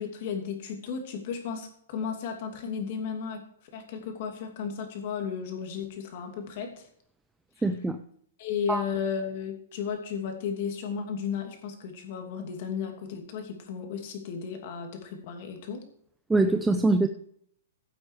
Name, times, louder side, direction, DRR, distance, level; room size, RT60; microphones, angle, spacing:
voice 1, 0.0-3.4 3.7-6.9 8.4-15.8, left 6 dB, 40° left, 4 dB, 2.7 m, -34 dB
voice 2, 7.6-8.0 8.7-8.8 16.3-17.1, right 2 dB, 5° right, 7 dB, 0.4 m, -23 dB
15.5 x 8.0 x 4.7 m, 0.66 s
hypercardioid pair, 175°, 0 cm